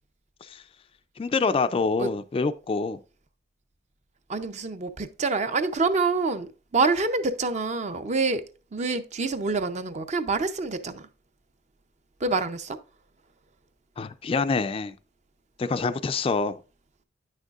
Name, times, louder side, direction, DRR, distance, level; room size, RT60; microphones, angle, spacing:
voice 1, 1.2-3.0 14.0-14.9 15.6-16.6, left 4 dB, 30° left, 0.3 m, -26 dB
voice 2, 4.3-8.4 8.7-11.1 12.2-12.8, right 3 dB, 40° right, 0.5 m, -26 dB
9.0 x 6.5 x 2.4 m
head